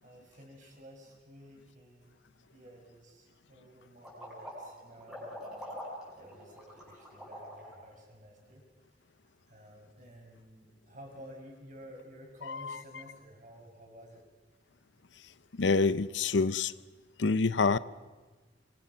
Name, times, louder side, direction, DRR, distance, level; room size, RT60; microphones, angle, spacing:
voice 1, 0.0-2.2 2.5-5.7 6.1-8.6 8.9-9.0 9.5-14.2, equal, 45° right, 6.2 m, -52 dB
sound 1, 4.0-7.9, equal, ahead, 7.3 m, -44 dB
voice 2, 15.6-16.7 17.2-17.8, left 4 dB, 75° left, 0.7 m, -27 dB
25.5 x 24.0 x 6.2 m
head